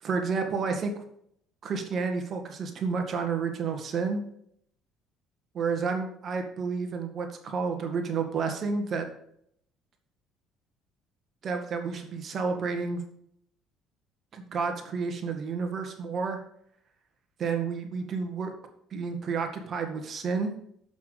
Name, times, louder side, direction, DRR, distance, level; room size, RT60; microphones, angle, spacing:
voice 1, 0.0-0.9 1.6-4.2 5.5-9.1 11.4-13.0 14.3-16.4 17.4-18.5 18.9-20.5, right 5 dB, 50° right, 5 dB, 1.9 m, -30 dB
7.3 x 5.9 x 6.7 m, 0.70 s
supercardioid pair, 75°, 0 cm